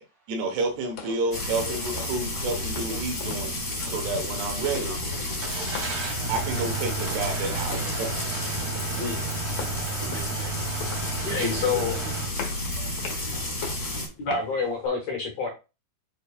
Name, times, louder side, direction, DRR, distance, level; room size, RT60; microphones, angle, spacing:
voice 1, 0.3-3.5 3.8-5.0 6.3-8.4, right 3 dB, 80° right, 4 dB, 3.3 m, -30 dB
sound 1, 0.6-14.9, left 6 dB, 75° left, 1.5 m, -43 dB
Frying (food), 1.3-14.1, left 1 dB, 30° left, 1.8 m, -31 dB
voice 2, 1.6-2.1 2.6-2.7 2.9-3.0 3.3-3.8 4.5-4.6 4.9-5.0 5.3-5.4 7.6-7.8 11.3-12.0 14.2-15.5, left 4 dB, 60° left, 1 dB, 2.2 m, -30 dB
Car / Engine starting, 5.4-12.3, right 6 dB, 60° right, 2.5 m, -34 dB
voice 3, 9.9-10.6 11.2-12.2 12.7-13.6, left 2 dB, 45° right, 0 dB, 2.1 m, -39 dB
7.7 x 5.6 x 2.4 m, 0.29 s
omnidirectional pair, 4.8 m